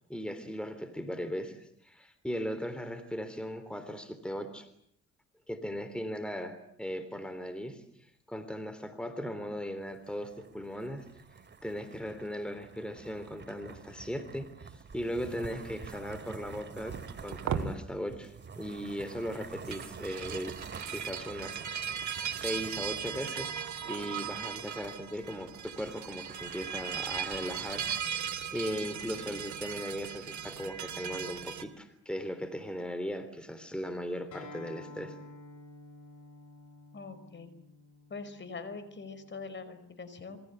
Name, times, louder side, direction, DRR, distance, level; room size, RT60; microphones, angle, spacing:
voice 1, 0.1-4.7 5.5-11.0 11.6-20.6 20.9-22.1 22.4-23.6 23.9-28.1 28.5-35.1, equal, 5° left, 10 dB, 3.4 m, -38 dB
sound 1, 9.8-25.0 25.2-25.3 25.7-28.0, right 5 dB, 35° right, 2.5 m, -48 dB
sound 2, 16.9-17.7 19.5-31.6, right 8 dB, 70° right, 2.5 m, -38 dB
Acoustic guitar, 34.3-39.5, left 2 dB, 75° left, 6.1 m, -51 dB
voice 2, 36.9-37.5 38.1-40.4, left 4 dB, 40° left, 12 dB, 5.1 m, -43 dB
27.5 x 23.0 x 8.2 m, 0.70 s
cardioid pair, 90°, 30 cm